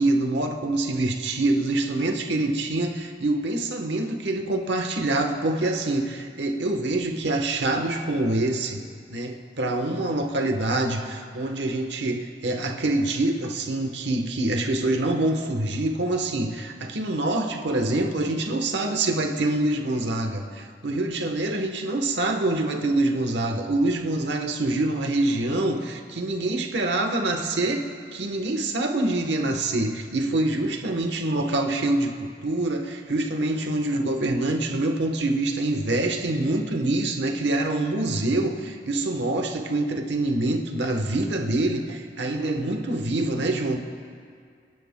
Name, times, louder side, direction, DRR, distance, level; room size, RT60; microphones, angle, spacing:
voice 1, 0.0-43.8, right 2 dB, 80° right, 4 dB, 1.1 m, -25 dB
29.5 x 11.0 x 2.2 m, 2.1 s
head